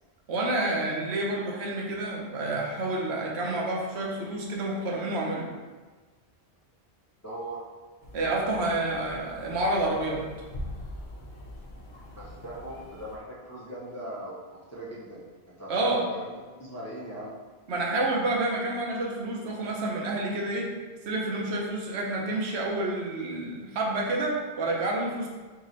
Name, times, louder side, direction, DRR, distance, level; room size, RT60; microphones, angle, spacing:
voice 1, 0.3-5.5 8.1-10.2 15.7-16.0 17.7-20.7 21.1-25.3, right 2 dB, 80° right, -2 dB, 1.0 m, -29 dB
voice 2, 7.2-7.6 12.2-17.3, right 1 dB, 20° left, -8 dB, 0.6 m, -40 dB
sound 1, 8.0-13.2, left 1 dB, 50° left, 0.8 m, -43 dB
3.1 x 2.9 x 3.8 m, 1.3 s
omnidirectional pair, 1.1 m